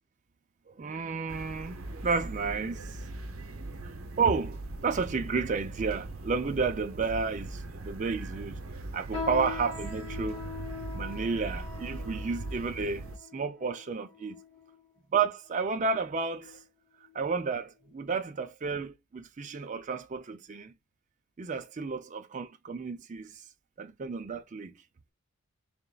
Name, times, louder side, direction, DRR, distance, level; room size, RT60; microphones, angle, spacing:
voice 1, 0.8-3.0 3.6-8.6 8.9-10.4 10.9-13.0 13.3-14.4 15.1-16.6 17.1-20.7 21.4-23.4 23.8-24.7, right 5 dB, 35° right, 0.4 m, -32 dB
sound 1, 1.3-13.2, right 2 dB, 70° right, 0.7 m, -40 dB
sound 2, 9.1-14.8 15.5-15.6 16.3-16.6 17.0-17.2 17.9-18.0, left 5 dB, 25° left, 1.5 m, -42 dB
3.9 x 3.5 x 2.3 m
head